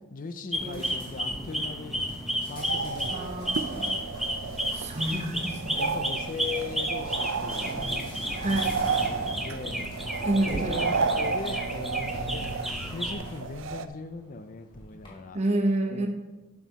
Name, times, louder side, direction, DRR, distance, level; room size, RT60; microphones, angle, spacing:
voice 1, 0.1-2.0 2.5-3.4 4.8-5.0 5.8-9.8 10.4-15.4 15.9-16.1, left 4 dB, 40° left, 9 dB, 0.5 m, -40 dB
sound 1, 0.5-13.1, equal, ahead, 0.8 m, -33 dB
sound 2, 0.7-15.1, right 1 dB, 25° left, 2.9 m, -45 dB
sound 3, 2.6-13.9, right 5 dB, 60° right, 0.5 m, -32 dB
voice 2, 3.1-4.0 4.7-6.0 8.4-8.8 10.2-10.9 15.3-16.1, right 1 dB, 30° right, 3 dB, 1.2 m, -29 dB
11.5 x 6.2 x 4.1 m, 1.1 s
head